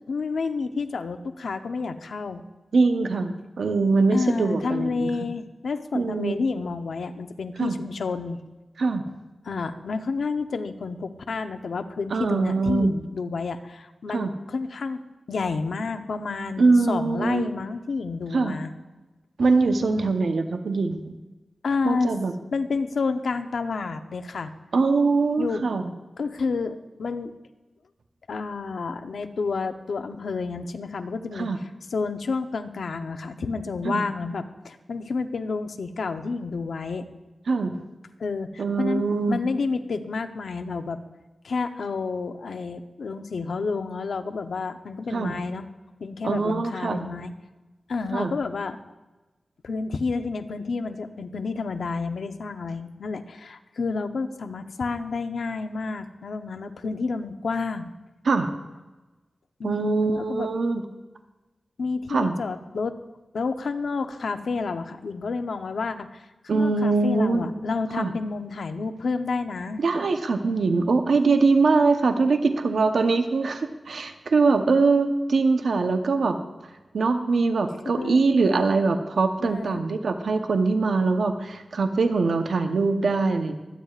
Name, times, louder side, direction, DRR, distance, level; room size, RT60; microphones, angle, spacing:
voice 1, 0.1-2.4 4.1-8.4 9.5-15.0 15.3-18.7 19.9-20.2 21.6-22.1 22.5-24.5 25.4-25.6 26.2-27.3 28.3-31.5 31.9-37.0 38.2-39.0 39.3-41.0 41.4-45.7 46.0-47.3 47.9-48.8 49.6-57.9 59.6-60.5 61.8-63.0 63.3-66.3 66.5-69.8 77.9-78.2 79.4-79.8, left 4 dB, 85° left, 8 dB, 0.7 m, -30 dB
voice 2, 2.7-5.1 5.9-6.4 7.6-7.8 8.8-9.0 12.1-13.0 14.1-14.3 16.6-17.5 18.3-18.6 19.4-21.1 21.8-22.3 24.7-25.9 31.4-31.6 33.8-34.0 37.5-37.7 38.6-39.4 45.1-45.3 46.2-47.1 48.1-48.3 58.2-58.5 59.6-60.8 62.1-62.3 66.5-67.5 68.0-68.1 69.8-76.4 76.9-83.6, right 3 dB, 80° right, 6 dB, 0.8 m, -22 dB
24.0 x 9.4 x 2.4 m, 1.1 s
wide cardioid pair, 95°, 0 cm